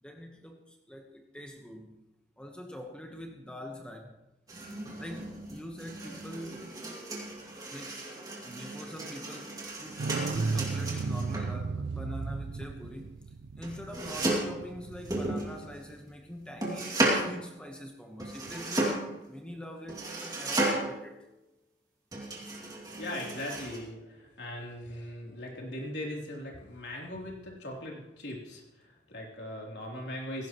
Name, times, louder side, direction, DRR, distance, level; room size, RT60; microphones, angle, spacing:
voice 1, 0.0-2.0 2.4-4.2 5.0-6.9 7.7-8.0 8.4-13.1 13.5-21.2, equal, 5° left, 2 dB, 1.1 m, -44 dB
sound 1, 4.5-11.5 13.6-14.6 15.1-16.0 16.6-17.3 18.2-19.1 19.9-21.0 22.1-23.8, right 2 dB, 20° right, 2.4 m, -34 dB
sound 2, 10.0-15.4 18.5-18.6, right 4 dB, 80° right, 0.4 m, -34 dB
voice 2, 22.9-30.5, left 1 dB, 75° left, -2 dB, 3.4 m, -40 dB
17.0 x 15.5 x 3.1 m, 0.95 s
head